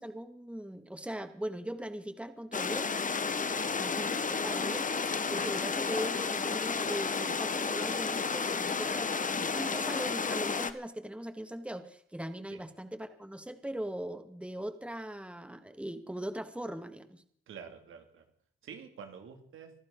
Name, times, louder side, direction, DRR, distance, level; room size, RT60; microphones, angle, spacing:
voice 1, 0.0-2.9 3.8-4.2 4.4-4.9 5.3-17.2, right 1 dB, 5° right, 8 dB, 2.1 m, -40 dB
sound 1, 2.5-10.7, left 5 dB, 40° left, 1.4 m, -32 dB
voice 2, 17.5-18.2 18.6-19.7, right 7 dB, 80° right, 6 dB, 2.6 m, -48 dB
25.5 x 12.0 x 4.0 m, 0.65 s
supercardioid pair, 60°, 20 cm